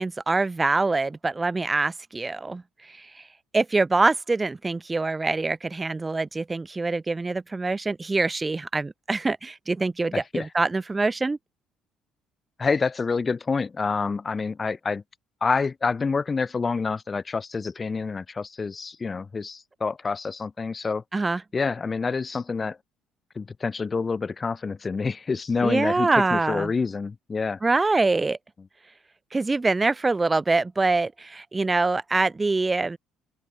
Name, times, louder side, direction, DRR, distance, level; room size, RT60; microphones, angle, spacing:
voice 1, 0.0-3.3 3.5-11.4 21.1-21.4 25.6-26.7 27.6-28.4 29.3-33.0, right 3 dB, 20° right, 1.4 m, -24 dB
voice 2, 10.1-10.5 12.6-15.0 15.4-21.0 21.5-22.8 23.4-27.6, left 4 dB, 30° left, 5.8 m, -27 dB
open air
supercardioid pair, 75°, 0 cm